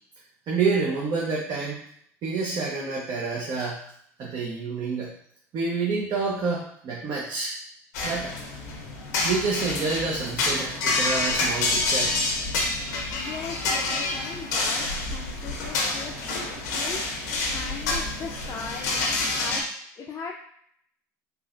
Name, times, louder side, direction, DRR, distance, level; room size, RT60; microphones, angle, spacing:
voice 1, 0.5-1.8 2.2-3.9 4.2-5.1 5.5-7.5 8.0-8.4 9.2-12.4, right 4 dB, 50° right, -3 dB, 0.8 m, -28 dB
sound 1, 7.9-19.6, left 3 dB, 85° left, 0.8 m, -28 dB
voice 2, 13.1-19.7 20.0-20.3, left 5 dB, 35° left, -1 dB, 0.5 m, -39 dB
3.8 x 2.8 x 2.5 m, 0.67 s
hypercardioid pair, 80°, 9 cm